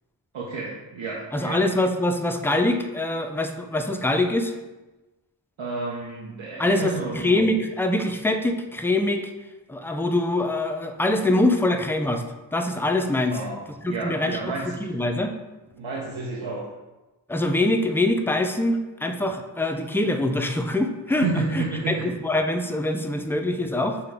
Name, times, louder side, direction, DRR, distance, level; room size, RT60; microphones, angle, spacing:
voice 1, 0.3-1.6 5.6-7.3 13.3-13.6 13.9-14.7 15.8-16.7 21.2-22.1, right 4 dB, 85° right, -4 dB, 0.7 m, -31 dB
voice 2, 1.3-4.5 6.6-9.3 9.7-12.2 12.5-13.4 13.8-14.5 14.8-15.3 17.3-24.0, left 1 dB, 5° left, 5 dB, 0.3 m, -24 dB
5.6 x 2.3 x 3.4 m, 1.1 s
cardioid pair, 45°, 45 cm